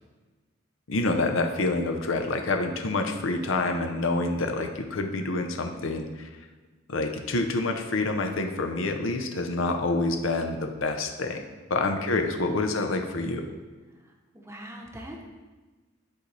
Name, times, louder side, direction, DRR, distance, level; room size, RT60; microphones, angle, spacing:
voice 1, 0.9-6.3 6.9-11.4 11.7-13.4, left 2 dB, 80° left, 5 dB, 0.8 m, -27 dB
voice 2, 11.9-12.9 14.3-15.2, equal, 15° right, 0 dB, 0.8 m, -43 dB
11.0 x 4.0 x 3.3 m, 1.3 s
head